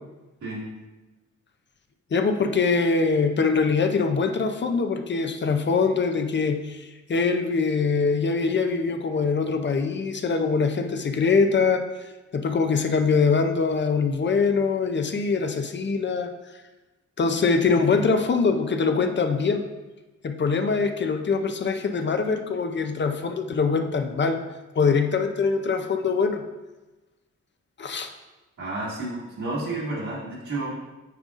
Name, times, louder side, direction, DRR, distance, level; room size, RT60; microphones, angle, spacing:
voice 1, 2.1-11.8 12.3-16.3 17.2-19.6 20.2-24.4 24.8-26.4 27.8-28.1, left 4 dB, 40° left, 6 dB, 0.4 m, -23 dB
voice 2, 28.6-30.7, right 2 dB, 75° right, -8 dB, 2.0 m, -31 dB
9.1 x 5.1 x 2.4 m, 1.1 s
wide cardioid pair, 175°, 30 cm